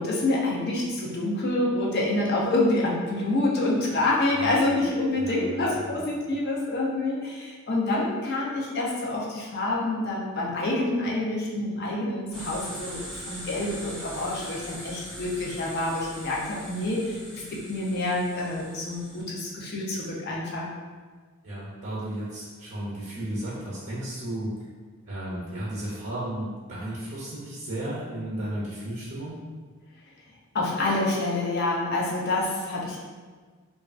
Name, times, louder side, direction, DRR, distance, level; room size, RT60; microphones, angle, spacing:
voice 1, 0.0-20.7 30.5-33.0, left 2 dB, 50° left, -3 dB, 0.5 m, -27 dB
voice 2, 4.3-4.8 5.2-6.0 21.4-24.6 25.1-29.4, right 1 dB, 50° right, -7 dB, 0.7 m, -34 dB
sound 1, 12.3-19.2, equal, 5° left, 0.6 m, -41 dB
3.0 x 2.3 x 2.4 m, 1.5 s
head